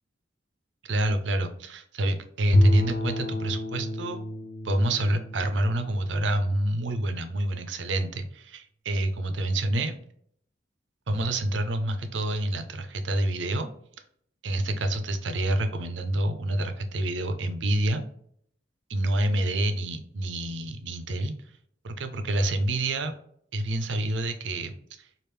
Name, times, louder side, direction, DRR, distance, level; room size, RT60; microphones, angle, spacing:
voice 1, 0.9-4.2 4.6-10.0 11.1-13.7 14.4-18.0 18.9-21.3 21.8-23.1 23.5-24.7 25.0-25.1, right 1 dB, 85° right, 8 dB, 0.6 m, -27 dB
Bowed string instrument, 2.5-6.8, left 1 dB, 65° left, 0.5 m, -28 dB
3.4 x 2.5 x 3.2 m, 0.64 s
head